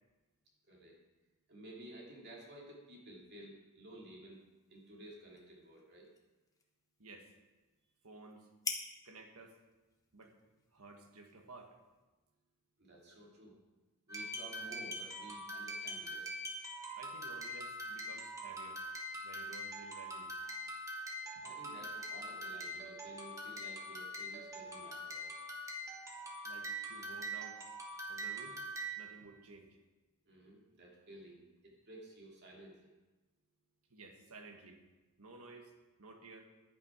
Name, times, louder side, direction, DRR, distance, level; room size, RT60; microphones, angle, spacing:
voice 1, 0.7-1.0 1.5-4.4 4.7-6.1 12.8-13.6 14.1-16.4 21.4-25.4 30.2-32.9, right 1 dB, 50° right, -2 dB, 2.5 m, -54 dB
sound 1, 4.3-12.0, left 4 dB, 15° left, 1.0 m, -50 dB
voice 2, 7.0-7.3 8.0-8.5 9.0-9.6 10.1-10.4 10.7-11.8 13.1-13.2 17.0-18.8 19.2-20.3 21.3-21.4 26.4-27.6 28.1-28.6 29.0-29.8 33.9-34.8 35.2-35.7 36.0-36.4, right 3 dB, 75° right, 4 dB, 1.6 m, -54 dB
sound 2, 14.1-29.1, right 1 dB, 15° right, 1.5 m, -43 dB
11.0 x 9.2 x 4.9 m, 1.2 s
head